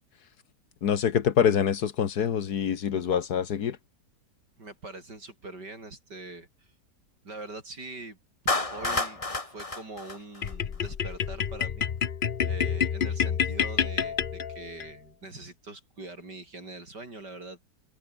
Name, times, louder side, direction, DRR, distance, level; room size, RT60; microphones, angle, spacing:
voice 1, 0.8-3.8, left 8 dB, 65° left, 1.7 m, -25 dB
voice 2, 4.6-6.7 7.2-8.2 8.7-11.9 12.4-17.7, right 2 dB, 70° right, 6.9 m, -43 dB
Clapping, 8.5-10.9, left 2 dB, 20° left, 1.9 m, -30 dB
sound 1, 10.4-14.9, left 7 dB, 45° left, 0.7 m, -28 dB
open air
omnidirectional pair, 1.9 m